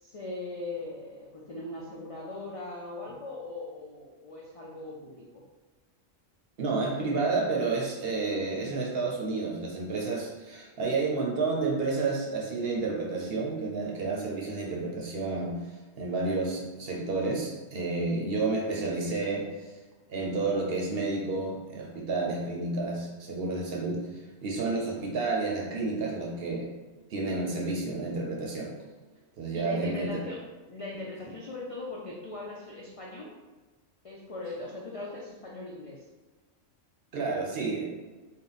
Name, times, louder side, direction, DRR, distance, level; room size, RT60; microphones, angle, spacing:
voice 1, 0.0-5.4 27.2-27.3 29.5-30.4 30.7-33.3 34.0-36.1, left 2 dB, 55° left, -4 dB, 0.3 m, -40 dB
voice 2, 6.6-15.5 16.0-19.5 20.1-26.7 27.1-28.7 29.4-30.2 37.1-37.8, right 3 dB, 55° right, -1 dB, 0.8 m, -30 dB
3.7 x 2.2 x 3.9 m, 1.3 s
omnidirectional pair, 1.3 m